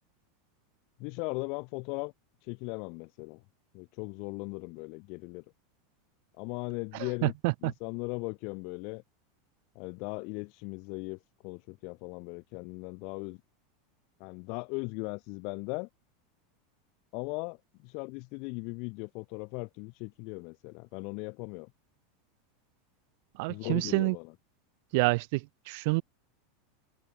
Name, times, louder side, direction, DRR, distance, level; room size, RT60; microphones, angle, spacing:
voice 1, 1.0-2.1 2.4-3.4 3.7-5.4 6.4-7.3 7.6-9.0 9.7-13.4 14.2-15.9 17.1-21.7 23.5-24.3, left 32 dB, 55° left, 5.1 m, -38 dB
voice 2, 23.4-24.1 24.9-26.0, right 28 dB, 60° right, 0.8 m, -28 dB
supercardioid pair, 140°, 0 cm